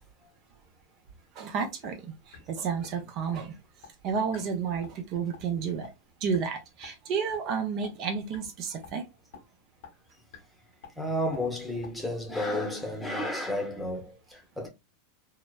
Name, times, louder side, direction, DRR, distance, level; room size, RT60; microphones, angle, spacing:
voice 1, 1.4-3.6 4.0-5.9 6.2-9.0, right 6 dB, 50° right, 0.6 m, -31 dB
sound 1, 1.8-2.0 2.3-2.4 2.8-2.9 3.3-3.4 3.8-3.9 4.3-4.4 4.8-5.0 5.3-5.5 5.8-5.9 6.3-6.4 6.8-6.9 7.3-7.4 7.8-7.9 8.3-8.5 8.8-8.9 9.3-9.4 9.8-9.9 10.3-10.4 10.8-10.9 11.3-11.4 11.8-11.9, left 7 dB, 65° left, 0.8 m, -46 dB
voice 2, 11.0-14.7, left 1 dB, 5° left, 0.8 m, -32 dB
2.9 x 2.0 x 2.2 m
hypercardioid pair, 100°, 0 cm